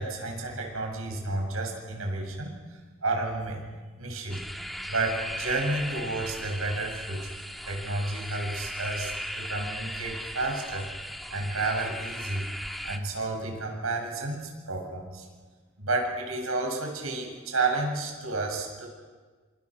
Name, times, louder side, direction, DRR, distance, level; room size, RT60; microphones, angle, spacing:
voice 1, 0.0-3.6 4.0-4.4 4.8-7.4 7.6-10.9 11.3-12.5 12.8-15.3 15.8-18.9, right 2 dB, 80° right, 1 dB, 7.5 m, -31 dB
sound 1, 4.3-13.0, equal, ahead, 1.3 m, -37 dB
29.5 x 27.5 x 6.3 m, 1.4 s
head